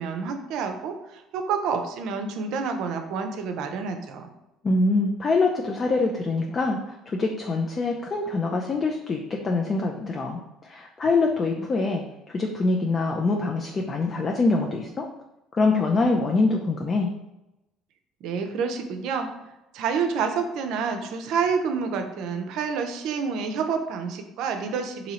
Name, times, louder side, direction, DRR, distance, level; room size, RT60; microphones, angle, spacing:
voice 1, 0.0-4.3 18.2-19.3 19.7-25.1, right 5 dB, 70° right, 6 dB, 0.5 m, -28 dB
voice 2, 4.6-15.1 15.5-17.1, left 3 dB, 35° left, 1 dB, 0.4 m, -24 dB
2.8 x 2.7 x 4.1 m, 0.93 s
hypercardioid pair, 70°, 0 cm